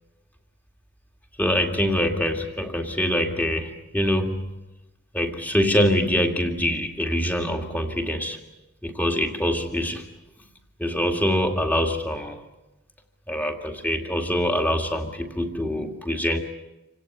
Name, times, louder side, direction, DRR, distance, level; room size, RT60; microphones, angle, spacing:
voice 1, 1.4-4.5 5.1-8.4 8.8-10.1 10.8-12.4 13.3-16.4, equal, 10° left, 4 dB, 2.1 m, -24 dB
27.0 x 17.0 x 9.7 m, 1.0 s
head